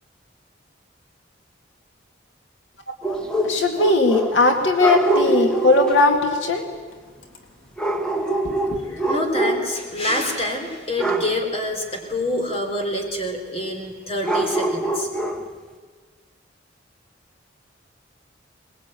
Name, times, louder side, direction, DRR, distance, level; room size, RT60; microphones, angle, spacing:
sound 1, 3.0-4.5 4.8-6.0 7.8-9.8 10.1-10.4 11.0-11.4 14.2-15.5, right 1 dB, 5° left, 1.4 m, -24 dB
voice 1, 3.4-6.6 8.4-9.0, left 2 dB, 80° left, 4 dB, 1.9 m, -19 dB
voice 2, 9.1-15.1, left 1 dB, 30° left, 3 dB, 3.7 m, -26 dB
22.0 x 20.5 x 9.0 m, 1.5 s
head